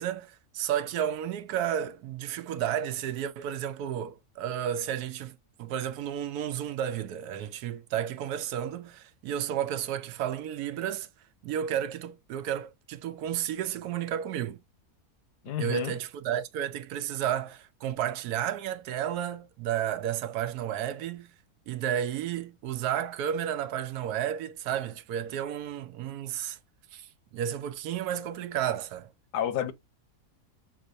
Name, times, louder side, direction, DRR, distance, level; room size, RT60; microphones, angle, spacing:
voice 1, 0.0-11.1 11.4-14.6 15.6-21.3 21.7-26.6 26.9-29.1, right 10 dB, 80° right, 1.1 m, -32 dB
voice 2, 15.4-16.0 29.3-29.7, left 10 dB, 85° left, 1.3 m, -30 dB
5.9 x 2.7 x 2.6 m
omnidirectional pair, 1.6 m